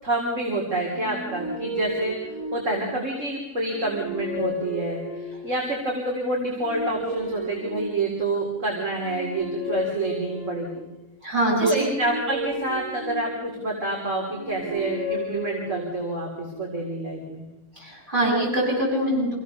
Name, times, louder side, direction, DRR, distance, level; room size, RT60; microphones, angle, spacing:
voice 1, 0.0-10.8 11.6-17.4, right 2 dB, 60° right, -2 dB, 4.1 m, -28 dB
sound 1, 0.9-3.1 3.5-5.6 6.3-8.4 8.9-10.9 11.6-13.7 14.2-16.2, left 1 dB, 85° right, 8.6 m, -34 dB
voice 2, 11.2-11.7 17.8-19.3, right 1 dB, 35° right, -4 dB, 8.2 m, -23 dB
27.0 x 16.5 x 6.8 m, 1.0 s
omnidirectional pair, 1.5 m